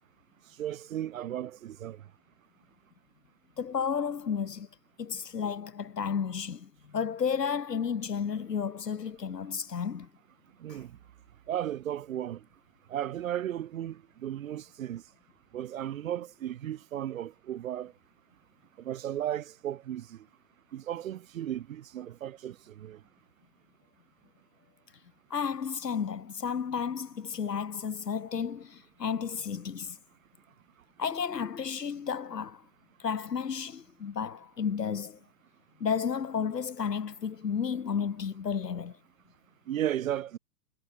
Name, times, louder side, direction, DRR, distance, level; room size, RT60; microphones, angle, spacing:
voice 1, 0.6-2.0 10.6-10.9 11.5-12.4 12.9-15.0 15.5-17.9 18.8-20.2 20.7-23.0 39.7-40.4, right 11 dB, 55° right, 0.8 m, -35 dB
voice 2, 3.6-4.7 5.0-10.1 10.7-10.8 25.3-30.0 31.0-32.6 33.0-35.2 35.8-39.0, left 7 dB, 85° left, 0.9 m, -32 dB
figure-of-eight pair, 105°, 48 cm